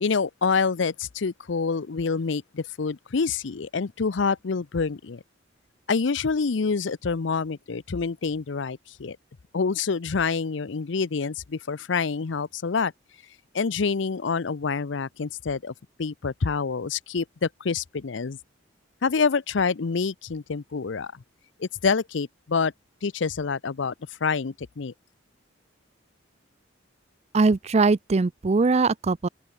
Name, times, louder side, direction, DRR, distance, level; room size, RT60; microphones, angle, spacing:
voice 1, 0.0-5.2 5.9-9.2 9.5-12.9 13.5-15.7 16.0-18.4 19.0-21.1 21.6-22.7 23.0-23.9 24.2-24.9, left 5 dB, 65° left, 0.6 m, -27 dB
voice 2, 27.3-29.3, right 4 dB, 35° right, 0.4 m, -21 dB
open air
head